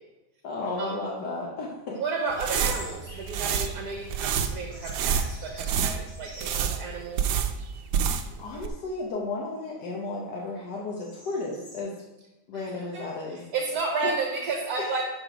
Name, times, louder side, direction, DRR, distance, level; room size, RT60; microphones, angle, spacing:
voice 1, 0.4-2.0 8.4-11.9 12.5-13.4 14.0-14.1, left 3 dB, 90° left, -3 dB, 1.7 m, -33 dB
voice 2, 1.9-7.4 12.9-15.0, right 4 dB, 65° right, 2 dB, 1.5 m, -32 dB
sound 1, 2.1-3.9 4.2-6.9 7.3-7.4 8.1-8.5 9.0-11.8, left 1 dB, 55° left, 2.7 m, -47 dB
sound 2, 2.3-8.4 8.6-8.7, right 7 dB, 90° right, 1.3 m, -28 dB
11.0 x 4.8 x 4.9 m, 1.0 s
omnidirectional pair, 1.8 m